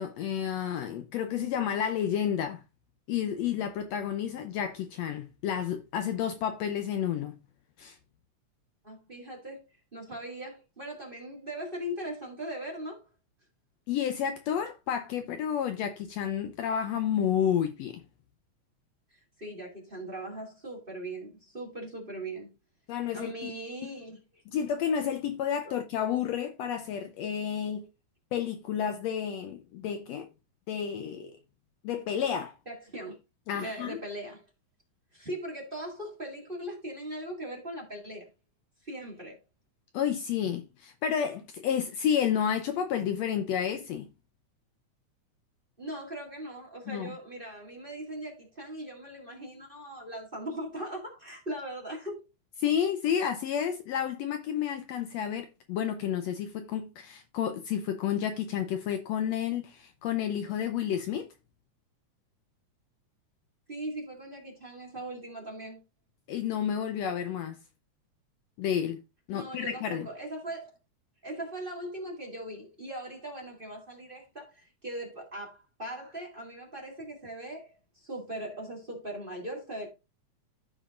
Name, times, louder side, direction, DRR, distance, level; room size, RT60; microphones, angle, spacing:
voice 1, 0.0-2.6 3.1-7.4 7.8-8.0 13.9-18.0 22.9-23.5 24.5-27.9 28.3-30.3 30.7-31.3 31.8-32.6 33.5-34.0 39.9-44.1 46.9-47.2 52.6-61.3 66.3-67.6 68.6-69.0 69.3-70.1, left 9 dB, 75° left, 1.7 m, -30 dB
voice 2, 8.8-13.0 19.1-22.5 23.1-24.4 25.6-25.7 32.7-33.2 33.5-34.5 35.1-38.3 38.8-39.4 45.8-52.2 63.7-65.8 69.3-70.7 71.2-79.9, right 1 dB, 20° right, 1.8 m, -40 dB
14.5 x 5.1 x 2.5 m
omnidirectional pair, 3.4 m